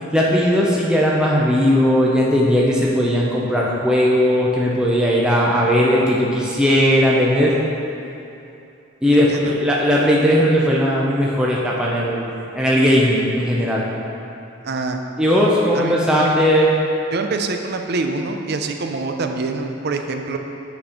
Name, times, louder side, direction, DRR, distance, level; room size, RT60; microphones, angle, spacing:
voice 1, 0.1-7.6 9.0-13.9 15.2-16.7, equal, 5° right, -5 dB, 0.5 m, -17 dB
voice 2, 9.1-9.5 14.6-15.0 15.7-16.3 17.1-20.4, right 3 dB, 55° right, 5 dB, 0.5 m, -25 dB
8.3 x 4.2 x 4.9 m, 2.8 s
head